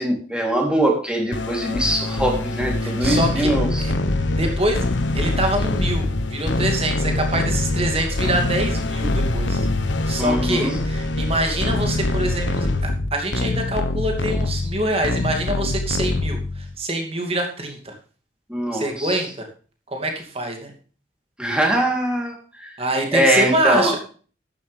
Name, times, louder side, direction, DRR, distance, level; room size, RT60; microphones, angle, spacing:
voice 1, 0.0-3.8 10.2-10.8 18.5-19.2 21.4-22.7 23.1-23.9, right 1 dB, 5° right, 0 dB, 3.3 m, -22 dB
sound 1, 1.3-16.7, left 2 dB, 85° left, 1.2 m, -24 dB
voice 2, 2.8-3.5 3.8-3.9 4.3-4.9 5.1-9.7 10.1-16.4 16.8-17.9 18.7-19.5 19.9-20.7 22.8-24.0, right 1 dB, 30° right, 3 dB, 2.6 m, -25 dB
13.0 x 11.0 x 3.5 m, 0.38 s
head